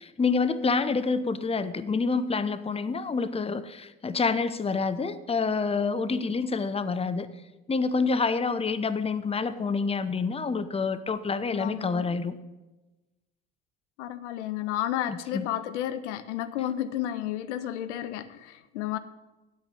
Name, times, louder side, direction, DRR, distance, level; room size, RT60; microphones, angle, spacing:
voice 1, 0.0-7.3 7.7-12.4 15.1-15.5, left 4 dB, 15° left, 13 dB, 0.8 m, -27 dB
voice 2, 11.5-12.1 14.0-19.0, left 12 dB, 75° left, 14 dB, 0.6 m, -32 dB
9.0 x 8.0 x 7.0 m, 1.1 s
hypercardioid pair, 55°, 35 cm